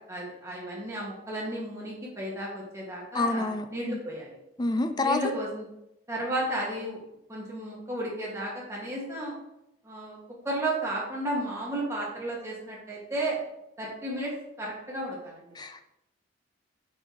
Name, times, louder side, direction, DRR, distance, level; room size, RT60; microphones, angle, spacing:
voice 1, 0.1-4.4 5.0-5.7 6.1-7.0 7.3-9.3 9.8-10.2 10.4-13.4 13.8-15.5, right 1 dB, 15° right, -5 dB, 1.9 m, -33 dB
voice 2, 3.1-4.0 4.6-5.2 15.6-15.9, left 2 dB, 20° left, 8 dB, 0.4 m, -28 dB
8.1 x 5.4 x 3.1 m, 0.86 s
head